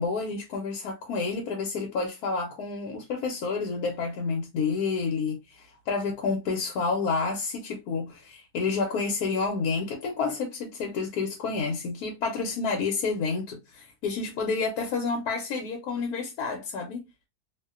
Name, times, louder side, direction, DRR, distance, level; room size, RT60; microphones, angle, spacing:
voice 1, 0.0-17.0, left 4 dB, 80° left, 1.1 m, -29 dB
2.6 x 2.1 x 2.3 m
omnidirectional pair, 1.6 m